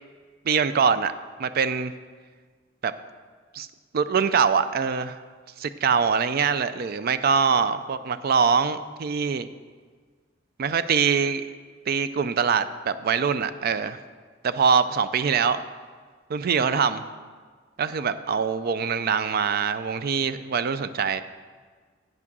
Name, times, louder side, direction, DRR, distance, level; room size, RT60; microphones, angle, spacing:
voice 1, 0.5-1.1 1.4-1.9 2.8-2.9 3.5-3.7 3.9-5.2 5.6-9.5 10.6-11.5 11.9-14.0 14.4-15.6 16.3-17.0 17.8-21.2, right 6 dB, 50° right, 13 dB, 0.4 m, -23 dB
9.1 x 6.1 x 6.0 m, 1.5 s
head